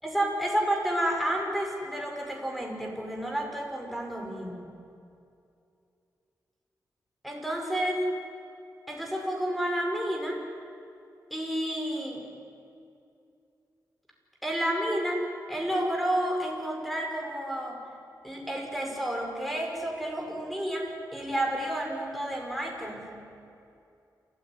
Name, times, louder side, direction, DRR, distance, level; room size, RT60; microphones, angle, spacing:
voice 1, 0.0-4.6 7.2-8.0 8.9-10.4 11.3-12.2 14.4-15.2 15.5-17.8 18.2-23.1, right 1 dB, ahead, 1 dB, 5.6 m, -30 dB
28.0 x 14.5 x 9.8 m, 2.6 s
wide cardioid pair, 90°, 7 cm